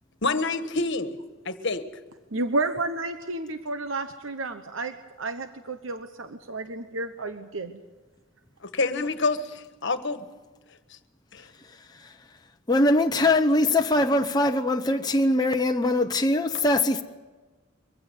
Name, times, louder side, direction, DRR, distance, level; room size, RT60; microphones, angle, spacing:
voice 1, 0.2-1.2 1.4-1.8 8.6-10.2 11.3-11.5, left 3 dB, 60° left, 1.5 m, -27 dB
voice 2, 2.3-7.7, right 2 dB, 70° right, 1.1 m, -31 dB
voice 3, 12.7-17.0, left 1 dB, 20° left, 0.8 m, -22 dB
23.5 x 16.0 x 9.7 m
head